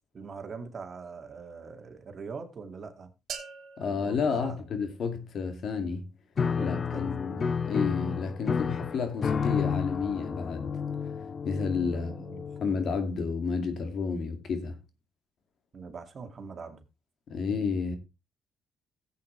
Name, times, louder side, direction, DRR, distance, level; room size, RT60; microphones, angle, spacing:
voice 1, 0.1-3.1 3.9-4.6 6.6-7.1 11.9-12.4 15.7-16.9, right 5 dB, 45° right, 2.1 m, -42 dB
sound 1, 3.3-5.3, right 6 dB, 65° right, 2.3 m, -44 dB
voice 2, 3.8-6.1 6.6-10.7 11.5-12.1 12.6-14.8 17.3-18.0, left 5 dB, 60° left, 2.2 m, -31 dB
Piano, 6.4-13.1, left 6 dB, 45° left, 0.6 m, -31 dB
15.0 x 8.3 x 3.2 m
cardioid pair, 90°, 0 cm